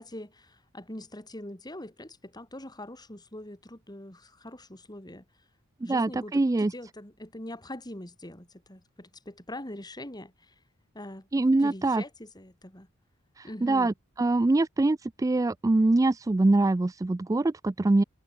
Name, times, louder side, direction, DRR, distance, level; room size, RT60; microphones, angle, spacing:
voice 1, 0.0-5.2 5.8-10.5 10.9-11.3 11.6-12.9 13.4-13.9, left 1 dB, 20° left, 4.5 m, -43 dB
voice 2, 5.9-6.7 11.3-12.0 13.4-13.9 14.2-18.0, right 2 dB, 15° right, 0.3 m, -24 dB
head